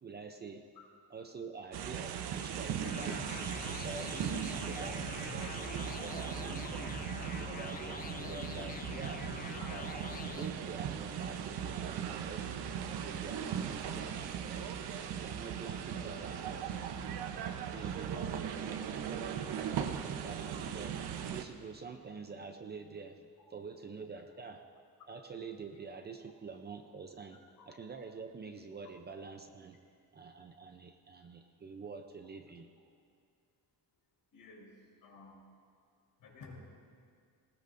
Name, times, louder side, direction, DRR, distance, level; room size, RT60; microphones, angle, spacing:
voice 1, 0.0-0.6 1.1-4.3 4.7-6.9 7.4-9.3 9.7-9.9 10.3-12.5 13.0-14.7 15.1-16.7 17.7-21.0 21.3-24.7 25.1-27.4 27.7-29.8 30.1-32.7, right 5 dB, 25° right, 5 dB, 0.6 m, -47 dB
sound 1, 1.7-21.4, right 8 dB, 85° right, 1.0 m, -38 dB
sound 2, 2.8-10.5, left 6 dB, 25° left, 0.4 m, -45 dB
voice 2, 34.3-35.5 36.2-36.6, left 3 dB, 65° left, -3 dB, 4.8 m, -53 dB
20.0 x 19.5 x 2.6 m, 2.3 s
cardioid pair, 170°, 38 cm